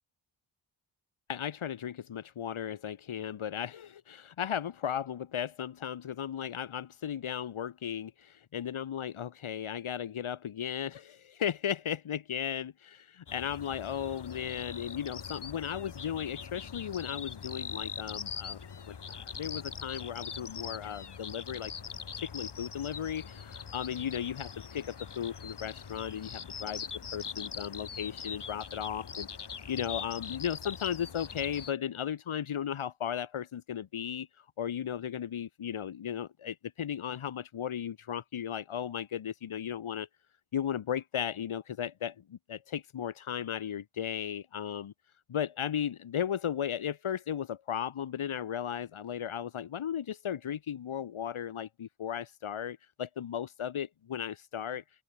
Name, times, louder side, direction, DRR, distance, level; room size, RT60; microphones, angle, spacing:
voice 1, 1.3-18.6 18.9-21.7 22.2-26.9 27.1-29.3 29.7-40.1 40.5-44.9 45.3-54.8, left 9 dB, 85° left, 5.5 m, -36 dB
sound 1, 13.3-31.7, left 6 dB, 55° left, 3.9 m, -42 dB
open air
cardioid pair, 70°, 48 cm